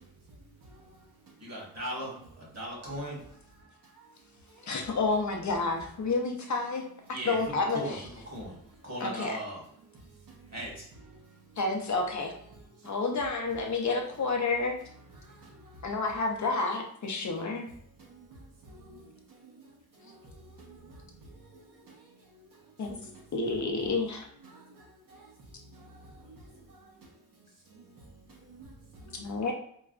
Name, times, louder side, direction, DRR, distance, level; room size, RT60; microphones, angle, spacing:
voice 1, 1.4-3.2 7.1-7.4 7.7-8.0 8.3-8.5 8.8-9.6 10.5-10.8, equal, 45° right, 1.5 m, -37 dB
voice 2, 4.6-8.1 9.0-9.4 11.6-12.3 12.8-14.8 15.8-17.7 22.8-23.0 23.3-24.3 29.1-29.5, left 3 dB, 55° left, 0.6 m, -30 dB
voice 3, 18.6-19.0 20.0-20.9 24.5-24.8 25.1-25.2 26.3-26.4 27.7-27.8 28.5-28.6 29.0-29.2, right 2 dB, 70° right, 1.0 m, -51 dB
4.6 x 2.1 x 2.4 m
wide cardioid pair, 140°, 36 cm